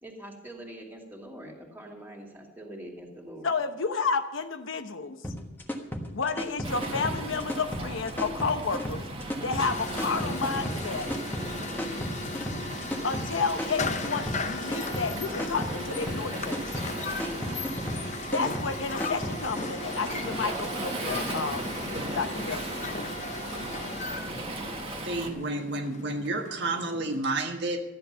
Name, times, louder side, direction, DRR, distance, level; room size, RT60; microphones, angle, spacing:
voice 1, 0.0-3.5 17.2-17.7, equal, 10° right, -1 dB, 2.5 m, -44 dB
voice 2, 3.4-5.2 6.1-9.0 9.4-11.1 13.0-16.6 18.3-21.7 22.1-22.7, left 4 dB, 80° left, 8 dB, 1.0 m, -31 dB
sound 1, 5.2-19.7, equal, 10° left, 1.3 m, -34 dB
Waves surf, 6.6-25.3, right 2 dB, 30° right, 1.6 m, -37 dB
sound 2, 9.6-27.2, left 3 dB, 35° left, 0.7 m, -37 dB
voice 3, 25.0-27.8, right 2 dB, 60° right, 4 dB, 1.4 m, -30 dB
14.0 x 10.5 x 5.6 m, 0.98 s
head